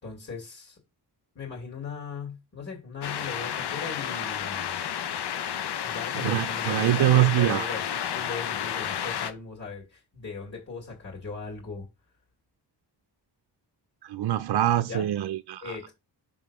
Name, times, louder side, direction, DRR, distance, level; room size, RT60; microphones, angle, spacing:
voice 1, 0.0-0.8 1.3-4.8 5.8-11.9 14.8-15.1 15.6-15.9, left 4 dB, 35° left, 2.7 m, -38 dB
sound 1, 3.0-9.3, left 9 dB, 70° left, 0.9 m, -31 dB
voice 2, 6.2-7.7 14.0-15.8, right 14 dB, 70° right, 0.5 m, -24 dB
5.7 x 3.8 x 6.0 m
wide cardioid pair, 125°, 41 cm